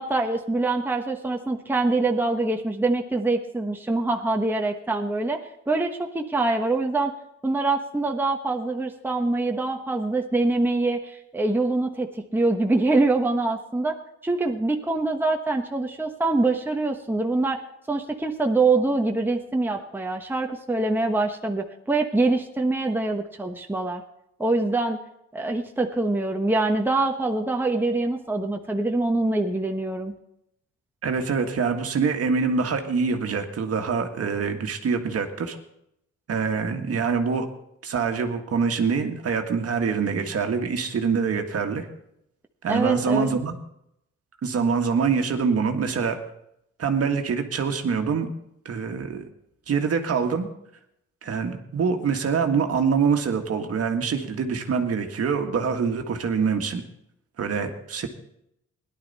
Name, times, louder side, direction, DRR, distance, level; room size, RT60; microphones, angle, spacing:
voice 1, 0.0-5.4 5.7-7.1 7.4-14.0 14.2-17.6 17.9-24.0 24.4-25.0 25.3-30.1 42.7-43.4, right 2 dB, 5° right, 3 dB, 1.1 m, -24 dB
voice 2, 31.0-35.6 36.3-37.5 37.8-41.9 42.6-43.6 44.4-46.2 46.8-48.3 48.7-49.3 49.7-50.5 51.2-56.8 57.4-58.1, right 5 dB, 50° right, 4 dB, 1.7 m, -25 dB
17.5 x 11.0 x 4.2 m, 0.78 s
cardioid pair, 90°, 30 cm